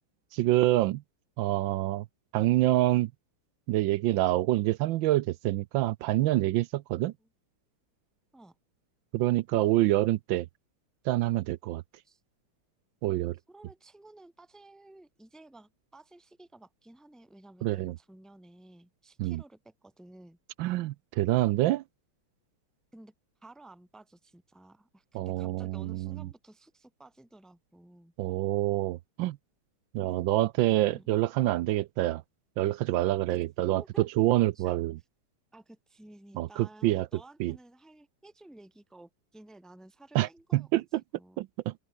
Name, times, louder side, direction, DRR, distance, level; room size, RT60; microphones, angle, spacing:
voice 1, 0.3-1.0 1.4-2.1 2.3-3.1 3.7-7.1 9.1-10.5 11.0-11.8 13.0-13.4 17.6-17.9 19.2-19.4 20.6-21.8 25.1-26.3 28.2-29.4 29.9-32.2 32.6-34.9 36.4-37.1 37.4-37.5 40.1-41.0 41.4-41.7, right 16 dB, 75° right, 1.2 m, -26 dB
voice 2, 13.5-20.4 22.9-23.1 23.4-28.1 30.0-30.2 30.9-31.2 33.3-34.1 34.5-34.8 35.5-40.7 41.1-41.4, right 2 dB, ahead, 2.1 m, -54 dB
open air
omnidirectional pair, 2.3 m